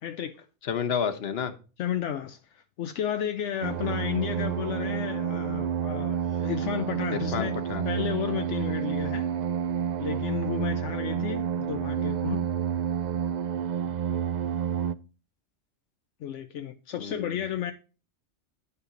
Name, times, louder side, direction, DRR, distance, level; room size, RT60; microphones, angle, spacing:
voice 1, 0.0-0.5 1.8-7.5 7.8-9.3 10.0-12.4 16.2-17.7, left 9 dB, 75° left, 0.9 m, -32 dB
voice 2, 0.6-1.5 7.1-7.8 17.0-17.3, left 7 dB, 60° left, 1.2 m, -30 dB
sound 1, 3.6-14.9, right 8 dB, 65° right, 0.4 m, -29 dB
9.6 x 5.6 x 3.8 m
omnidirectional pair, 1.2 m